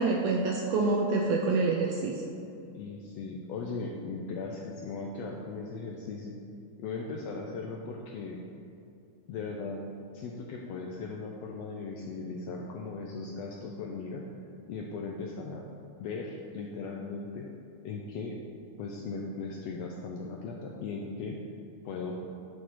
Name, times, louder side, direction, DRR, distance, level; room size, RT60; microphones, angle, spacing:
voice 1, 0.0-2.2, right 3 dB, 80° right, 0 dB, 1.5 m, -27 dB
voice 2, 2.7-6.3 6.8-8.4 9.3-9.8 10.1-14.2 14.7-15.6 16.0-17.5 17.8-18.4 18.8-21.4 21.8-22.3, left 4 dB, 80° left, 0 dB, 1.5 m, -38 dB
10.0 x 4.2 x 4.6 m, 2.6 s
omnidirectional pair, 3.5 m